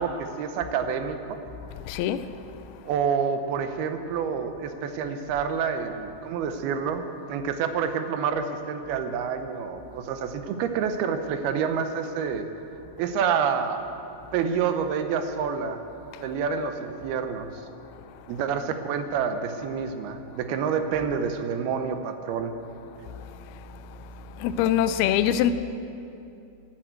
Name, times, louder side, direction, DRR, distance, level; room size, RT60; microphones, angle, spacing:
voice 1, 0.0-1.4 2.9-12.5 13.0-13.9 14.3-15.8 16.2-17.5 18.3-22.6, right 6 dB, 80° right, 2.7 m, -28 dB
voice 2, 1.8-2.3 23.2-23.3 24.4-25.5, left 10 dB, 85° left, 2.5 m, -23 dB
12.0 x 11.0 x 9.0 m
omnidirectional pair, 4.5 m